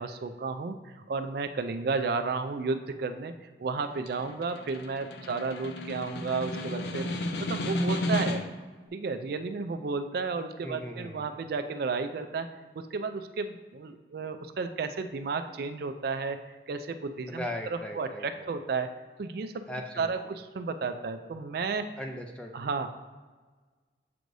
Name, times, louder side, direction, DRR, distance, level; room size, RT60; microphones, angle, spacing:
voice 1, 0.0-3.3 3.6-7.1 7.4-8.4 8.9-12.5 12.7-17.4 17.7-18.9 19.2-19.6 20.0-21.9 22.5-22.9, right 4 dB, 55° right, 8 dB, 0.3 m, -32 dB
Snare drum, 3.8-8.7, left 1 dB, 60° left, 0.5 m, -33 dB
voice 2, 10.6-11.3 17.3-18.5 19.7-20.1 22.0-22.5, left 1 dB, 5° left, 2 dB, 0.5 m, -38 dB
7.6 x 4.7 x 2.6 m, 1.4 s
head